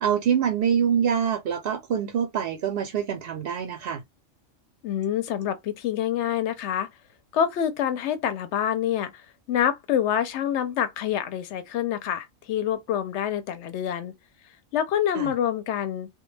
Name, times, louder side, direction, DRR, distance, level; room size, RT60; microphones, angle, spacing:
voice 1, 0.0-4.0 15.1-15.3, right 8 dB, 60° right, 0.6 m, -25 dB
voice 2, 4.8-6.9 7.3-9.1 9.5-14.1 14.7-16.1, left 9 dB, 65° left, 0.8 m, -26 dB
2.2 x 2.1 x 3.1 m
omnidirectional pair, 1.3 m